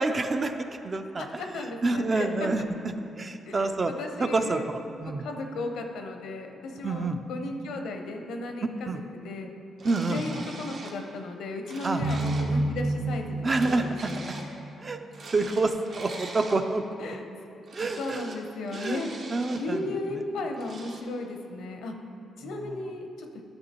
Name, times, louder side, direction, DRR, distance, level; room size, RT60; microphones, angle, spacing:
voice 1, 0.0-1.4 1.8-2.6 3.2-3.9 4.2-4.6 5.0-5.2 6.8-7.2 8.9-9.0 9.8-10.4 11.8-12.0 13.4-14.1 14.8-15.0 15.3-16.8 17.7-18.2 18.7-19.0 19.3-19.8, right 3 dB, 30° right, 7 dB, 0.4 m, -27 dB
voice 2, 1.2-2.5 3.5-4.7 5.0-9.5 10.1-13.5 13.8-14.3 17.0-17.2 18.0-21.9 22.4-23.3, left 2 dB, 85° left, 4 dB, 0.7 m, -35 dB
sound 1, 9.8-11.0 11.4-12.5 13.5-14.5 15.1-16.6 17.7-18.4 18.7-19.6 20.5-21.0, right 3 dB, 60° right, 0.9 m, -43 dB
sound 2, 12.0-15.2, right 2 dB, 85° right, 0.7 m, -30 dB
11.5 x 6.2 x 2.9 m, 2.7 s
cardioid pair, 115°, 0 cm